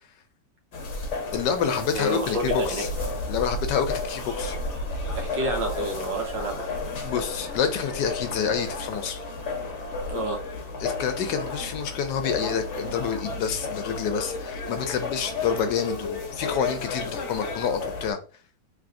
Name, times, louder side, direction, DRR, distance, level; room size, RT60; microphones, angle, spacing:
sound 1, 0.7-18.1, left 3 dB, 50° left, 0.9 m, -32 dB
voice 1, 1.3-2.9 3.3-4.5 7.0-9.2 10.8-18.2, left 7 dB, 75° left, 1.2 m, -28 dB
voice 2, 1.9-2.9 5.2-6.7 10.1-10.4, right 1 dB, 75° right, 1.7 m, -29 dB
3.4 x 3.4 x 2.5 m
omnidirectional pair, 2.0 m